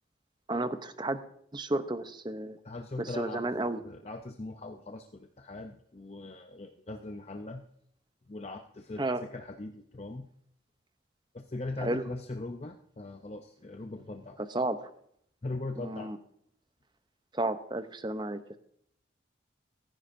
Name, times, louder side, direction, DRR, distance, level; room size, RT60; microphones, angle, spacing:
voice 1, 0.5-1.2 1.5-2.6 3.0-3.8 9.0-9.2 11.8-12.0 14.5-14.9 15.8-16.2 17.3-18.6, right 2 dB, 25° right, 11 dB, 0.6 m, -32 dB
voice 2, 2.6-3.4 3.8-7.6 8.3-10.3 11.3-14.4 15.4-16.1, left 2 dB, 35° left, 5 dB, 0.6 m, -40 dB
15.0 x 14.0 x 2.6 m, 0.68 s
head